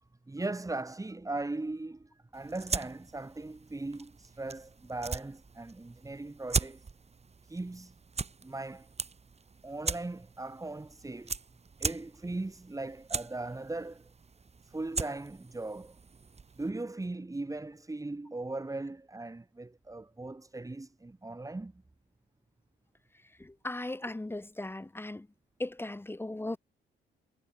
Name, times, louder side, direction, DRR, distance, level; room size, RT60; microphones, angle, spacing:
voice 1, 0.3-6.8 7.4-7.9 8.4-8.9 9.6-11.4 11.8-14.0 14.6-15.9 16.6-21.7, right 2 dB, 15° right, 6.8 m, -39 dB
sound 1, 2.3-16.7, right 4 dB, 30° right, 4.4 m, -40 dB
voice 2, 23.4-25.3 25.6-26.6, left 2 dB, 10° left, 1.2 m, -37 dB
cardioid pair, 90°, 20 cm